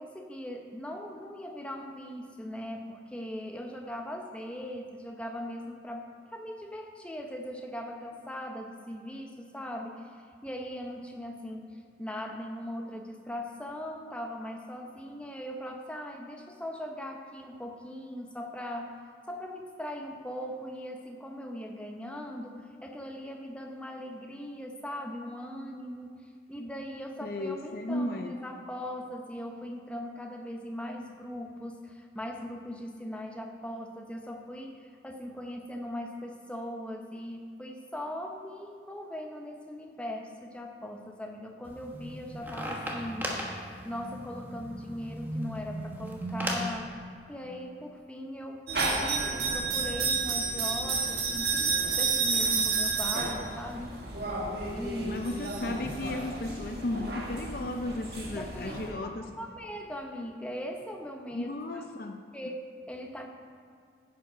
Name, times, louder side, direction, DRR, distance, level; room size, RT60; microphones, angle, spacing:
voice 1, 0.0-19.0 19.3-26.2 26.5-47.0 47.3-53.9 54.7-55.2 58.3-59.1 59.4-61.8 62.3-63.3, equal, 5° left, 2 dB, 0.8 m, -40 dB
voice 2, 27.2-28.3 55.0-59.3 61.3-62.2, left 1 dB, 55° left, 4 dB, 0.6 m, -34 dB
sound 1, 41.6-46.8, equal, 10° right, 1.1 m, -36 dB
sound 2, 48.7-58.9, right 4 dB, 60° right, 1.7 m, -31 dB
11.5 x 8.0 x 5.1 m, 2.2 s
head